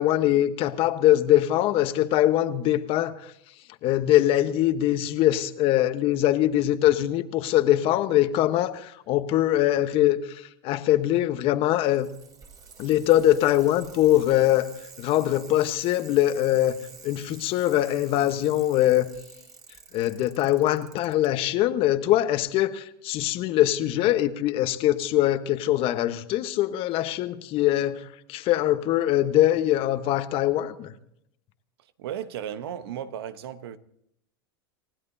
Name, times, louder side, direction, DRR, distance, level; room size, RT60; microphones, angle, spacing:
voice 1, 0.0-3.1 3.8-12.1 12.8-14.7 15.0-16.8 17.0-19.1 19.9-30.9, left 13 dB, 45° left, 1.2 m, -22 dB
Bicycle, 11.7-21.3 22.4-22.5, right 5 dB, 30° right, 3.1 m, -48 dB
voice 2, 32.0-33.8, right 10 dB, 75° right, 1.1 m, -35 dB
29.0 x 16.0 x 2.8 m
hypercardioid pair, 110°, 13 cm